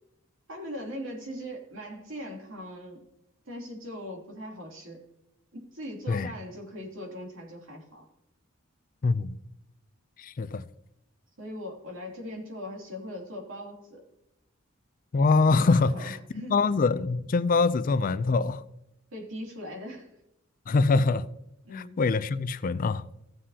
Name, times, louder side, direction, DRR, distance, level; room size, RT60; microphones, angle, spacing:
voice 1, 0.5-3.1 3.4-5.1 5.5-8.1 11.4-14.0 15.5-16.6 19.1-20.1 21.6-22.0, equal, 75° right, 3.0 m, -40 dB
voice 2, 9.0-9.4 10.2-10.7 15.1-18.6 20.7-21.3 21.7-23.0, left 3 dB, 45° left, 0.4 m, -24 dB
15.5 x 7.4 x 2.8 m
head